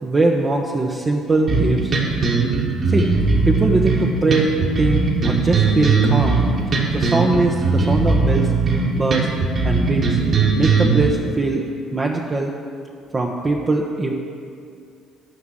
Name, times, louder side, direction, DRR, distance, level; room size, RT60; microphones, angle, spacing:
voice 1, 0.0-1.9 2.9-3.1 3.4-6.4 6.9-8.5 8.9-9.3 9.6-10.2 10.5-11.6 11.9-12.5 13.1-14.1, right 2 dB, 30° right, -1 dB, 0.9 m, -21 dB
sound 1, 1.5-11.1, right 4 dB, 50° right, 2.2 m, -19 dB
9.4 x 6.1 x 7.6 m, 2.4 s
hypercardioid pair, 50°, 0 cm